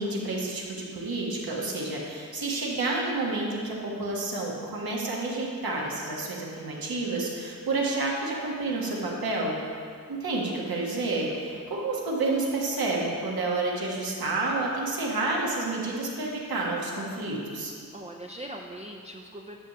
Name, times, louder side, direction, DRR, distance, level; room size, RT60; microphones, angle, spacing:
voice 1, 0.0-9.6 10.1-17.7, right 2 dB, 80° right, -3 dB, 1.5 m, -29 dB
voice 2, 11.3-11.8 17.9-19.6, right 1 dB, 20° right, 0 dB, 0.4 m, -41 dB
9.8 x 3.3 x 6.8 m, 2.2 s
wide cardioid pair, 110°, 36 cm